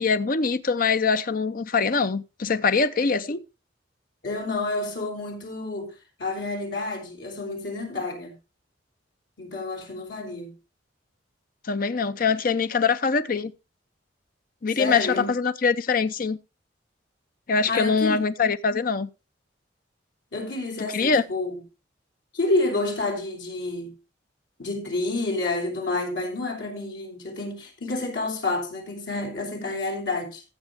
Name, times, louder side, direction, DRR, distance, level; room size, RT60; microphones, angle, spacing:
voice 1, 0.0-3.4 11.7-13.5 14.6-16.4 17.5-19.1 20.9-21.2, left 5 dB, 50° left, 0.6 m, -23 dB
voice 2, 4.2-5.9 6.2-8.3 9.4-10.5 14.8-15.3 17.7-18.5 20.3-21.6 22.3-23.9 24.6-30.4, left 2 dB, 80° left, 3.5 m, -29 dB
14.5 x 7.2 x 3.5 m
head